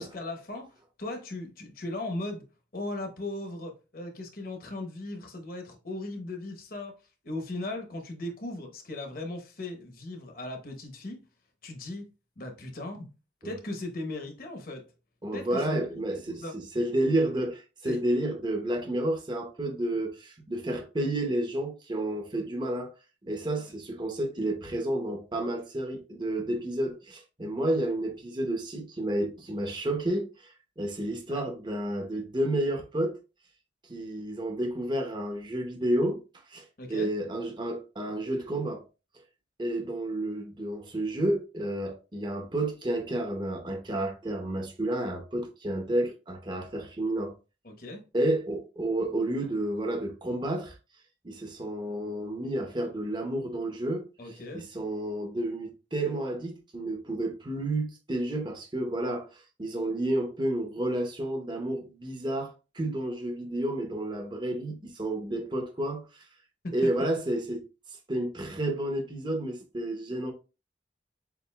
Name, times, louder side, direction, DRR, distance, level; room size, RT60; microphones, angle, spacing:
voice 1, 0.0-2.5 2.7-6.9 7.2-11.2 11.6-12.1 12.4-13.1 13.4-14.8 15.3-16.5 17.8-18.0 23.6-23.7 31.3-31.4 36.8-37.1 47.6-48.0 54.2-54.7 66.6-66.9, left 2 dB, 50° left, 1.0 m, -38 dB
voice 2, 15.2-22.9 23.3-33.2 33.9-36.2 36.5-38.8 39.6-47.3 48.1-50.8 51.2-54.1 54.7-66.2 66.7-67.6 68.1-70.3, right 1 dB, 25° right, 0.8 m, -31 dB
6.9 x 2.6 x 2.3 m
head